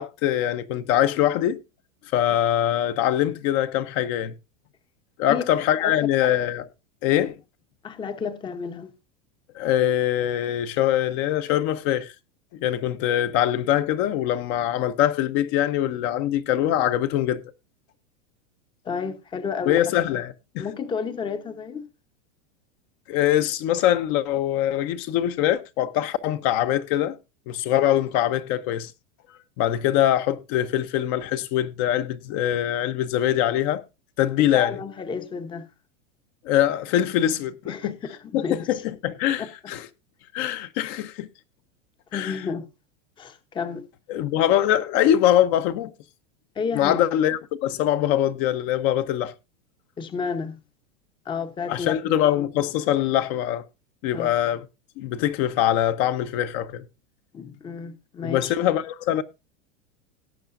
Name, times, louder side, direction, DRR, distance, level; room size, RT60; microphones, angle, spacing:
voice 1, 0.0-1.6 2.1-4.3 5.2-6.7 7.0-7.4 9.5-12.1 12.5-17.4 19.7-20.7 23.1-27.2 27.5-28.9 29.6-33.8 34.2-34.8 36.4-38.0 38.3-39.9 40.3-41.3 42.1-42.4 44.1-45.9 46.7-49.3 51.7-53.6 54.0-54.6 55.0-56.8 58.2-59.2, left 11 dB, 40° left, 0.9 m, -23 dB
voice 2, 7.8-8.9 18.8-19.8 20.6-21.9 34.5-35.7 37.6-38.8 39.4-39.5 42.1-42.7 43.2-43.9 46.6-47.0 50.0-50.6 51.3-51.9 54.1-54.3 57.3-58.5, left 5 dB, 15° left, 0.8 m, -31 dB
18.0 x 8.1 x 2.5 m
supercardioid pair, 150°, 38 cm